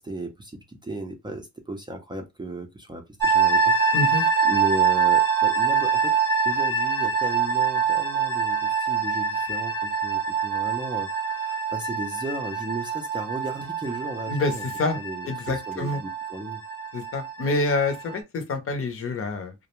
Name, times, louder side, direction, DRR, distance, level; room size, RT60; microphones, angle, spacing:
voice 1, 0.0-3.7 4.0-6.2 6.4-14.7 15.0-16.6, right 2 dB, 15° right, 0.5 m, -35 dB
sound 1, 3.2-18.2, right 6 dB, 5° left, 0.8 m, -25 dB
voice 2, 3.9-4.2 14.3-15.0 15.3-16.0 16.9-19.5, left 2 dB, 45° left, 0.7 m, -27 dB
2.3 x 2.1 x 2.9 m
cardioid pair, 90°, 30 cm